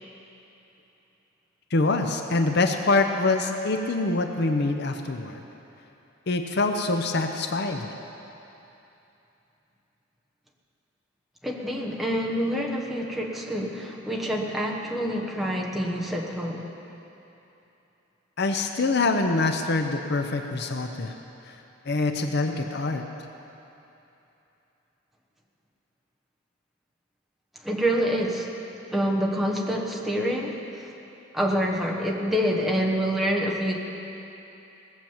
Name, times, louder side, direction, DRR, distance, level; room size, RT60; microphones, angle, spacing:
voice 1, 1.7-5.4 6.3-7.9 18.4-21.1 21.5-21.6 21.9-23.0, left 3 dB, 55° left, 5 dB, 0.7 m, -25 dB
voice 2, 11.4-16.7 27.6-28.5 28.9-30.9 31.3-33.8, equal, ahead, -2 dB, 1.1 m, -27 dB
18.5 x 7.4 x 7.2 m, 3.0 s
head